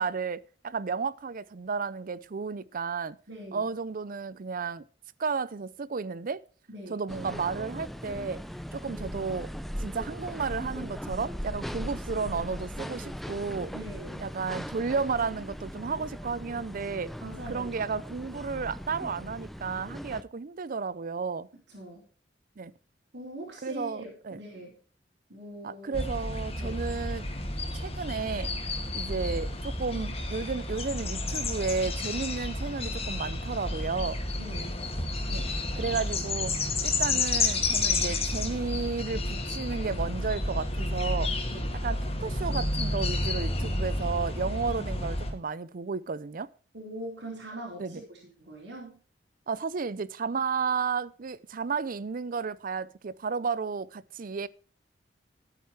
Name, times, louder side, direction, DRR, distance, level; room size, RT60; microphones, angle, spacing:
voice 1, 0.0-3.2 3.5-4.8 5.2-6.4 6.9-8.4 8.7-9.5 9.8-13.7 14.2-17.1 17.5-21.5 22.6-22.7 23.6-24.4 25.6-27.3 27.7-28.5 28.9-34.2 35.3-35.5 35.7-36.6 36.8-41.3 41.8-46.5 47.8-48.0 49.5-54.5, right 5 dB, 50° right, 0.5 m, -33 dB
voice 2, 3.3-3.7 6.7-7.0 13.7-14.3 17.2-17.8 21.7-22.0 23.1-24.8 25.3-25.9 26.6-26.8 34.4-34.8 41.5-41.7 46.7-49.0, right 1 dB, 75° right, 4.4 m, -42 dB
sound 1, 7.1-20.2, equal, ahead, 0.6 m, -39 dB
sound 2, 25.9-45.3, left 2 dB, 35° left, 2.4 m, -31 dB
13.0 x 9.2 x 4.5 m
head